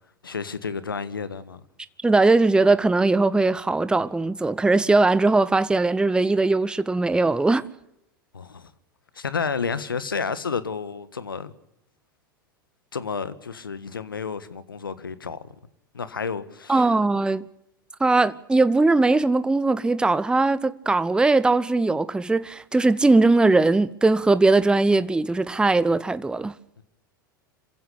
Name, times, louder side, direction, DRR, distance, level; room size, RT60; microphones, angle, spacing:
voice 1, 0.2-1.6 8.3-8.7 9.1-11.5 12.9-15.4 15.9-16.9 26.8-26.9, left 5 dB, 80° left, 1.5 m, -31 dB
voice 2, 2.0-7.6 16.7-17.4 18.0-26.5, right 3 dB, 10° right, 0.9 m, -20 dB
27.0 x 15.5 x 8.4 m
figure-of-eight pair, 90°, 11 cm